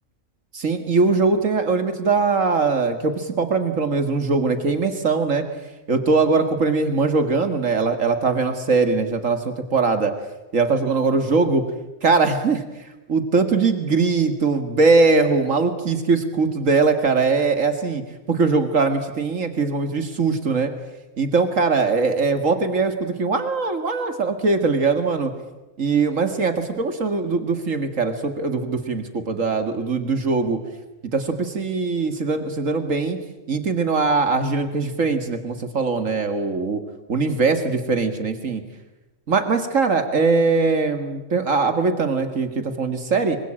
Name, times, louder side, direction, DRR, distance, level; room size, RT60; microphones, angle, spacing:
voice 1, 0.5-5.4 5.9-10.1 10.5-11.6 12.0-12.6 13.1-18.0 18.3-20.7 21.2-25.3 25.8-30.6 31.1-33.2 33.5-36.8 37.1-38.6 39.3-43.4, right 4 dB, 75° right, 8 dB, 2.4 m, -21 dB
25.5 x 24.5 x 8.9 m, 1.0 s
omnidirectional pair, 1.4 m